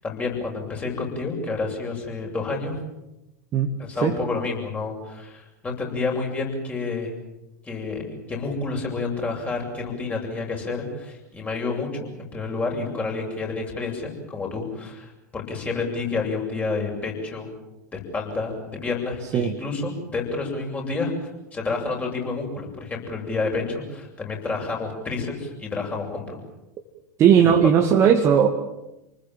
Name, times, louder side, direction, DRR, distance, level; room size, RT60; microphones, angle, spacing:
voice 1, 0.0-2.8 3.8-7.1 7.6-17.5 17.9-26.4 27.4-27.5, left 3 dB, 15° left, 0 dB, 7.8 m, -29 dB
voice 2, 27.2-28.5, right 8 dB, 30° right, 3 dB, 2.0 m, -17 dB
29.5 x 20.0 x 7.5 m, 0.93 s
figure-of-eight pair, 90°, 9 cm